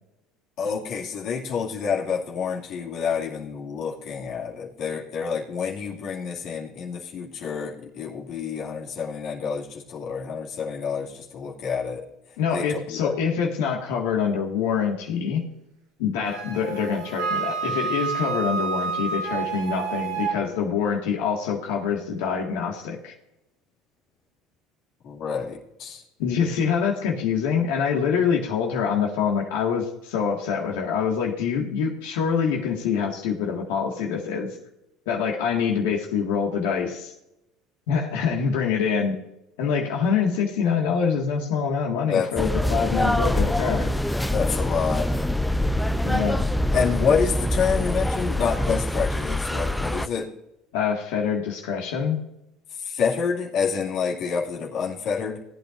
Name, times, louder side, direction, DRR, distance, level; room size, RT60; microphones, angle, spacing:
voice 1, 0.6-12.0 12.5-13.1 25.0-26.0 42.1-42.3 44.3-45.1 46.7-50.3 52.7-55.4, left 6 dB, 60° left, -2 dB, 2.2 m, -28 dB
voice 2, 12.4-15.4 16.0-23.1 26.2-34.5 35.1-37.1 37.9-39.2 39.6-43.9 46.0-46.5 50.7-52.2, left 6 dB, 75° left, 0 dB, 1.8 m, -25 dB
Wind instrument woodwind instrument, 16.3-20.4, right 5 dB, 85° right, 4.0 m, -29 dB
sound 1, 42.4-50.1, left 1 dB, 5° left, 0.6 m, -24 dB
18.5 x 8.9 x 2.6 m, 0.86 s
hypercardioid pair, 80°, 0 cm